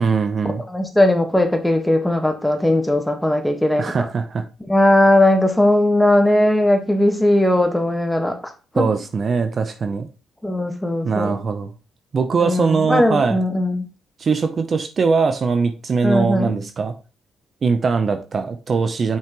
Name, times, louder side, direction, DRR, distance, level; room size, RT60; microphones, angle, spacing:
voice 1, 0.0-0.6 3.8-4.4 8.8-10.1 11.1-11.7 12.1-13.4 14.2-16.9 17.6-19.2, right 5 dB, 45° right, 8 dB, 0.8 m, -21 dB
voice 2, 0.7-4.0 4.7-8.4 8.7-8.9 10.4-11.4 12.4-13.9 16.0-16.6, left 1 dB, 5° left, 5 dB, 1.5 m, -18 dB
7.4 x 5.7 x 3.0 m, 0.33 s
cardioid pair, 90°, 0 cm